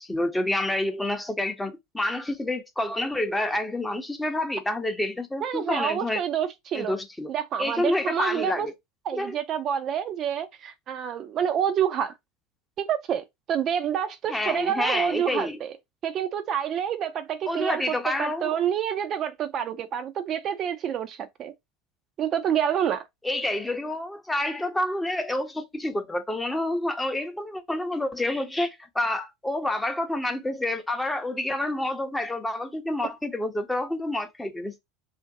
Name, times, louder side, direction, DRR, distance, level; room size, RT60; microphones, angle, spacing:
voice 1, 0.0-6.2 6.7-7.3 7.6-8.7 9.1-9.4 14.3-15.6 17.5-18.6 23.2-34.8, left 1 dB, 10° left, 0.6 m, -28 dB
voice 2, 5.4-7.0 7.3-8.7 9.1-12.1 12.8-15.7 16.0-21.5 22.2-23.0, right 9 dB, 45° right, 0.4 m, -28 dB
2.5 x 2.1 x 2.6 m
hypercardioid pair, 85°, 0 cm